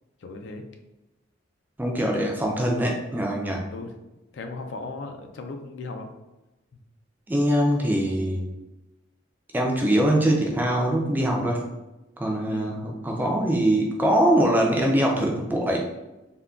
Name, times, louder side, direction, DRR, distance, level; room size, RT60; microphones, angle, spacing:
voice 1, 0.2-0.6 3.7-3.9 4.3-6.1 6.7-6.8 12.4-12.8, left 3 dB, 70° left, 5 dB, 0.4 m, -37 dB
voice 2, 1.8-3.6 7.3-8.5 9.5-11.6 12.2-15.9, right 1 dB, 10° right, 0 dB, 0.3 m, -23 dB
3.6 x 2.1 x 2.3 m, 1.0 s
head